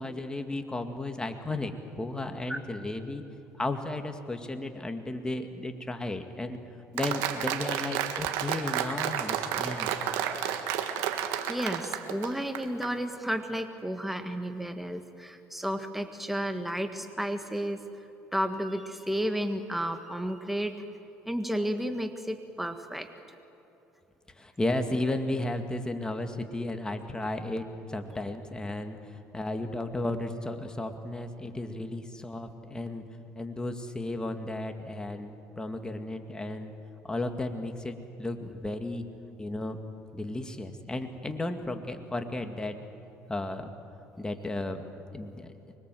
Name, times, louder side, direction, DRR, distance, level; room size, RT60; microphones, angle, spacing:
voice 1, 0.0-3.2 3.6-6.6 6.9-10.0 24.4-33.0 33.4-36.7 37.1-39.0 39.4-39.8 40.1-42.8 43.3-43.7 44.2-44.8 45.1-45.5, left 2 dB, 15° left, 6 dB, 2.0 m, -34 dB
Applause, 7.0-12.9, right 10 dB, 85° right, 1.7 m, -31 dB
voice 2, 11.2-20.8 21.2-23.1, equal, 5° right, 7 dB, 1.6 m, -32 dB
25.0 x 21.5 x 7.7 m, 2.9 s
supercardioid pair, 90°, 5 cm